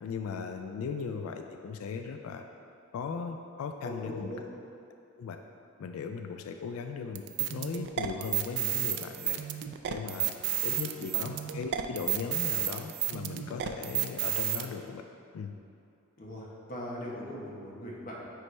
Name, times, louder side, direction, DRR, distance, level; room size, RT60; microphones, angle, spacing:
voice 1, 0.0-2.4 2.9-4.3 5.2-5.4 5.8-7.2 7.5-9.4 9.9-10.3 10.6-15.0 15.3-15.5, left 5 dB, 75° left, 5 dB, 0.3 m, -37 dB
voice 2, 3.8-4.4 6.5-6.7 10.7-11.1 16.2-18.3, equal, 40° left, -4 dB, 1.0 m, -41 dB
sound 1, 7.1-14.6, right 11 dB, 55° right, 0.3 m, -31 dB
9.3 x 3.2 x 3.2 m, 2.6 s
head